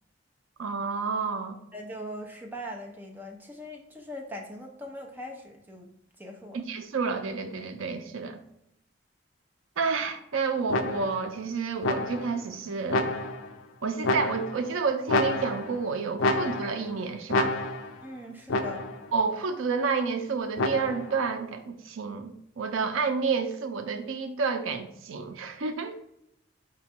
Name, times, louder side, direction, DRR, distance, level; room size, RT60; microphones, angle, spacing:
voice 1, 0.6-1.6 6.5-8.4 9.8-13.1 13.8-17.6 19.1-26.0, right 5 dB, 85° right, 7 dB, 0.5 m, -30 dB
voice 2, 1.7-6.6 18.0-18.9, equal, 10° right, 0 dB, 0.6 m, -41 dB
sound 1, 10.7-11.3 11.8-12.4 12.9-13.6 14.0-14.7 15.1-15.8 16.2-16.9 17.3-18.0 18.5-19.1 20.6-21.2, left 2 dB, 75° left, 0.4 m, -29 dB
4.9 x 2.2 x 4.3 m, 0.78 s
head